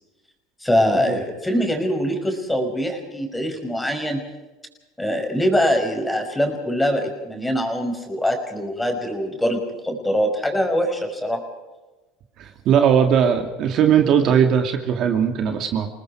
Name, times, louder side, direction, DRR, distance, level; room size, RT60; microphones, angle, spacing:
voice 1, 0.6-4.2 5.0-11.4, equal, 5° left, 3 dB, 5.7 m, -23 dB
voice 2, 12.4-15.9, right 8 dB, 50° right, 4 dB, 2.5 m, -19 dB
29.5 x 19.5 x 4.8 m, 1.2 s
supercardioid pair, 110°, 0 cm